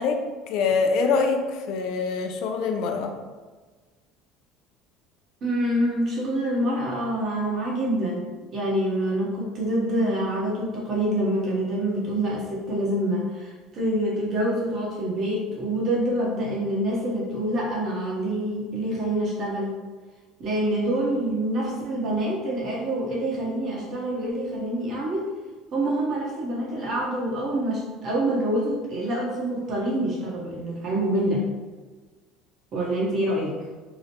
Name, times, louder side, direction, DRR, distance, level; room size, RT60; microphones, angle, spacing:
voice 1, 0.0-3.1, left 4 dB, 70° left, 5 dB, 0.4 m, -25 dB
voice 2, 5.4-8.3 8.5-19.7 20.4-25.3 25.7-31.4 32.7-33.6, right 1 dB, 45° right, -3 dB, 0.9 m, -26 dB
2.9 x 2.1 x 2.8 m, 1.3 s
cardioid pair, 120°, 0 cm